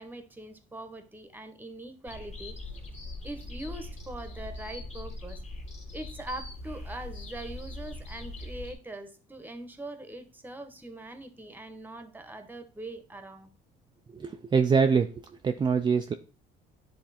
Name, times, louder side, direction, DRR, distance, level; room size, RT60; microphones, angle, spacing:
voice 1, 0.0-2.6 3.2-5.4 5.9-13.5, right 2 dB, 10° right, 1.1 m, -42 dB
sound 1, 2.1-8.7, left 2 dB, 40° left, 2.0 m, -41 dB
voice 2, 14.1-15.1 15.4-16.1, right 5 dB, 25° right, 0.5 m, -24 dB
10.0 x 3.4 x 4.2 m
cardioid pair, 110°, 17 cm